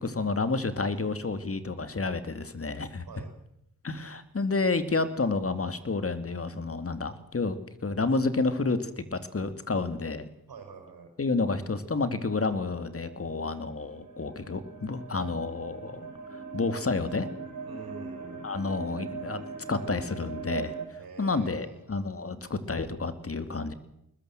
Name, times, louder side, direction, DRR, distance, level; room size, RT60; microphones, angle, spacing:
voice 1, 0.0-3.0 3.8-10.3 11.2-16.1 16.5-17.3 18.4-20.7 21.2-23.7, left 3 dB, 40° left, 11 dB, 2.5 m, -30 dB
voice 2, 10.5-11.1 17.6-18.5 21.0-21.8, right 4 dB, 70° right, 4 dB, 5.9 m, -46 dB
sound 1, 12.5-20.8, right 4 dB, 50° right, 7.8 m, -41 dB
21.5 x 20.5 x 7.7 m, 0.79 s
cardioid pair, 70°, 37 cm